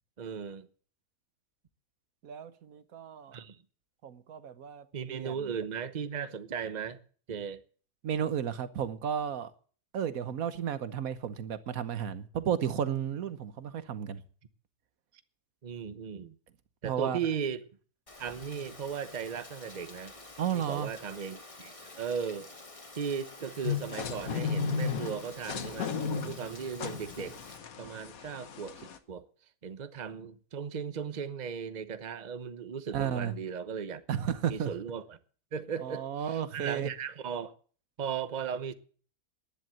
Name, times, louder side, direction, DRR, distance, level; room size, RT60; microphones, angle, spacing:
voice 1, 0.2-0.7 3.3-3.6 4.9-7.0 7.3-7.6 15.6-16.4 16.8-17.6 18.2-20.1 20.5-22.5 22.9-26.0 26.2-27.4 27.8-29.2 29.6-34.0 34.5-35.2 35.5-37.6 38.0-38.7, right 7 dB, 35° right, 0.8 m, -37 dB
voice 2, 2.2-3.4 4.0-5.5 8.0-9.5 9.9-14.2 16.8-17.2 20.4-20.9 32.9-33.3 34.1-34.7 35.8-36.9, right 8 dB, 65° right, 1.4 m, -33 dB
Rain, 18.1-27.6, left 2 dB, 20° left, 1.4 m, -50 dB
sound 1, 23.6-29.0, left 6 dB, 65° left, 1.5 m, -35 dB
11.0 x 10.5 x 7.6 m
omnidirectional pair, 1.7 m